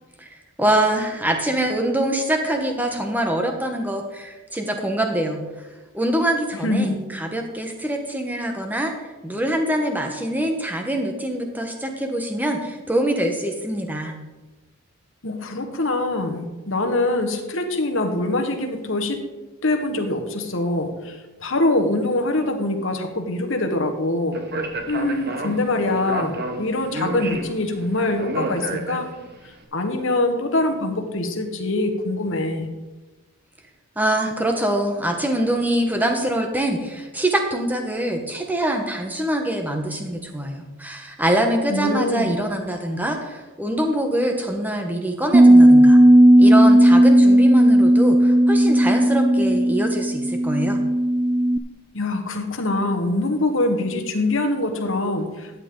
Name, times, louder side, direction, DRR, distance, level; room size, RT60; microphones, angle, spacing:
voice 1, 0.6-5.4 5.9-8.9 9.2-14.1 34.0-46.0 46.4-50.8, right 1 dB, 10° right, 3 dB, 1.1 m, -24 dB
voice 2, 6.6-7.0 15.2-19.2 19.6-24.4 24.9-29.1 29.7-32.7 41.7-42.4 51.9-55.5, left 2 dB, 60° left, 4 dB, 1.4 m, -24 dB
Speech, 24.3-29.4, right 1 dB, 45° right, 1.1 m, -30 dB
Bass guitar, 45.3-51.6, right 1 dB, 25° right, 0.4 m, -14 dB
13.5 x 8.6 x 3.8 m, 1.2 s
head